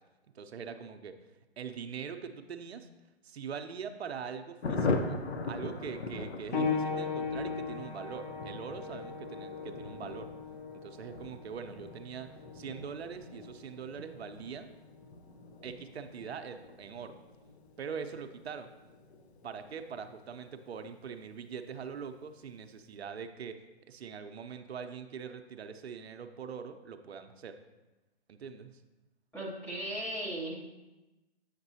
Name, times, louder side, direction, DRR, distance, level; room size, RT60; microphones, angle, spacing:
voice 1, 0.3-1.2 1.6-2.9 3.2-5.2 5.5-10.3 10.7-12.3 12.5-14.7 15.6-17.1 17.8-18.7 19.4-23.6 23.9-27.6 28.3-28.7, right 6 dB, 70° right, 7 dB, 0.6 m, -42 dB
Thunder, 4.6-20.7 21.0-21.1 21.4-21.5 21.8-22.2, left 3 dB, 75° left, 0.8 m, -41 dB
sound 1, 6.5-16.8 17.7-17.8 18.6-18.7, left 5 dB, 40° left, 1.0 m, -39 dB
voice 2, 29.3-30.7, right 1 dB, 5° left, -7 dB, 0.6 m, -37 dB
8.0 x 5.9 x 2.7 m, 1.1 s
hypercardioid pair, 145°, 33 cm